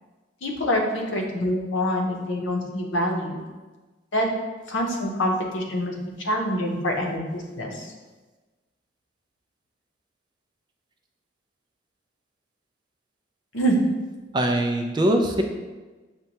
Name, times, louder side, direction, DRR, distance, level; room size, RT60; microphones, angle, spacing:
voice 1, 0.4-3.4 4.1-4.3 4.7-7.9 13.5-13.8, equal, 75° left, 1 dB, 0.7 m, -26 dB
voice 2, 14.3-15.4, right 1 dB, 25° right, 3 dB, 0.3 m, -22 dB
6.5 x 2.2 x 2.9 m, 1.3 s
head